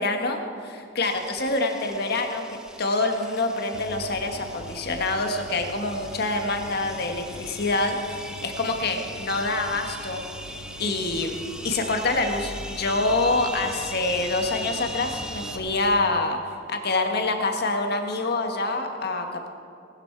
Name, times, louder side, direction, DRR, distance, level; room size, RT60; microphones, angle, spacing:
voice 1, 0.0-10.2 10.8-16.4 16.7-19.5, left 2 dB, 55° left, 4 dB, 1.7 m, -26 dB
sound 1, 1.0-15.6, equal, 5° right, 0.9 m, -40 dB
sound 2, 3.7-15.9, equal, 80° left, 1.7 m, -42 dB
19.5 x 12.5 x 4.7 m, 2.5 s
head